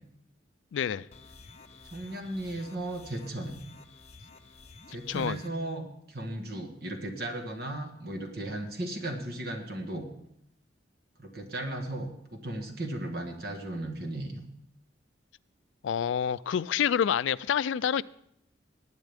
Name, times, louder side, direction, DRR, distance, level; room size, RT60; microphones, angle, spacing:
voice 1, 0.7-1.1 5.1-5.4 15.8-18.0, left 8 dB, 80° left, 0.3 m, -27 dB
sound 1, 1.1-5.5, left 3 dB, 35° left, 0.8 m, -52 dB
voice 2, 1.9-3.6 4.9-10.1 11.2-14.4, right 1 dB, 55° right, 1.5 m, -36 dB
20.0 x 9.0 x 3.5 m
head